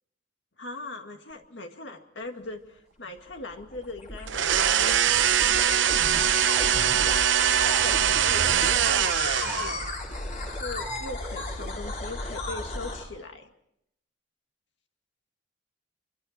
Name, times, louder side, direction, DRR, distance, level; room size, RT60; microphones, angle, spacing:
voice 1, 0.6-5.0 5.6-6.8 7.4-9.8 10.4-13.5, left 2 dB, 70° left, 4 dB, 2.1 m, -41 dB
sound 1, 3.2-13.0, left 2 dB, 40° left, 4.3 m, -34 dB
sound 2, 4.3-9.9, right 9 dB, 75° right, 0.7 m, -23 dB
25.0 x 24.0 x 4.4 m, 0.77 s
head